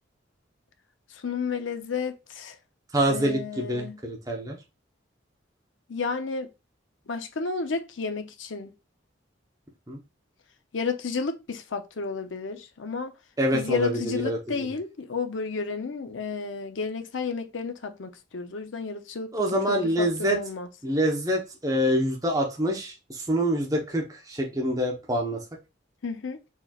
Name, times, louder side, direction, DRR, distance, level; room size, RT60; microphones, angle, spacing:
voice 1, 1.2-2.6 3.1-4.0 5.9-6.5 7.1-8.7 10.7-13.1 13.5-20.7 26.0-26.4, left 5 dB, 80° left, 0.7 m, -32 dB
voice 2, 2.9-4.6 9.9-10.0 13.4-14.7 19.3-20.4 20.8-25.4, equal, 20° right, 0.9 m, -26 dB
4.4 x 4.4 x 2.4 m
head